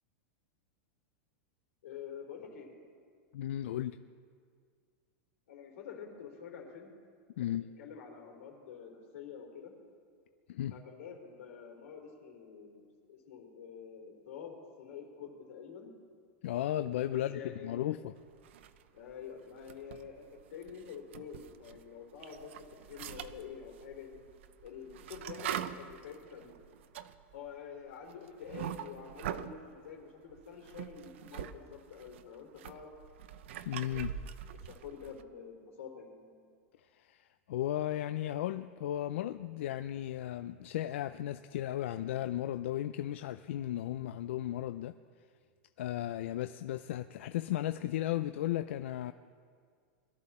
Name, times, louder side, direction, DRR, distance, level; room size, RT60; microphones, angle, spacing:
voice 1, 1.8-2.8 5.5-6.9 7.4-9.7 10.7-15.9 17.1-17.8 18.9-22.5 22.8-24.2 24.6-26.5 27.3-32.9 33.9-34.0 34.5-36.2, left 7 dB, 85° left, 3.6 m, -47 dB
voice 2, 3.3-4.0 7.4-7.7 10.5-10.8 16.4-18.1 33.6-34.1 36.9-45.0 45.8-49.1, left 13 dB, 65° left, 0.4 m, -35 dB
sound 1, 18.4-19.1 19.5-21.8 22.1-29.6 30.3-31.5 31.8-35.2, right 10 dB, 60° right, 0.6 m, -43 dB
21.5 x 13.0 x 4.3 m
supercardioid pair, 180°, 7 cm